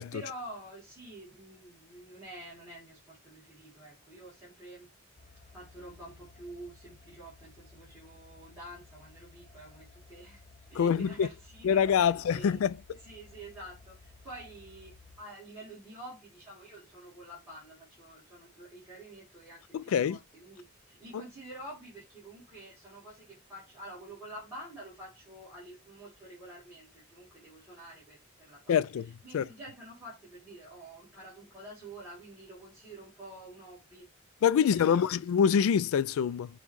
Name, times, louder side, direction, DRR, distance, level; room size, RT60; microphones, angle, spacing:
voice 1, 0.1-4.9 5.5-10.4 10.7-12.6 13.0-34.1 34.6-35.2, right 1 dB, 10° right, 2.0 m, -48 dB
sound 1, 5.2-15.2, left 3 dB, 30° left, 0.6 m, -56 dB
voice 2, 10.8-11.3 11.6-12.8 19.7-20.2 28.7-29.5 34.4-36.5, left 7 dB, 80° left, 0.3 m, -25 dB
5.2 x 2.3 x 3.1 m
head